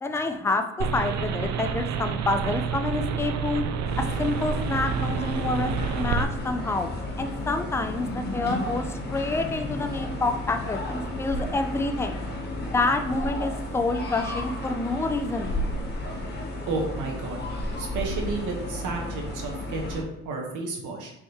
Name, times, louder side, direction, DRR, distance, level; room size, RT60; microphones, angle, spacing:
voice 1, 0.0-3.6 4.0-6.9 7.2-8.8 9.1-12.2 12.7-15.5, left 2 dB, 10° left, 6 dB, 0.4 m, -28 dB
sound 1, 0.8-6.2, right 6 dB, 65° right, 0.4 m, -28 dB
sound 2, 3.8-20.0, left 1 dB, 35° left, 1.1 m, -33 dB
voice 2, 16.7-17.4 17.8-21.1, right 3 dB, 85° right, 1 dB, 0.9 m, -32 dB
4.4 x 3.6 x 2.7 m, 0.94 s
cardioid pair, 90°, 30 cm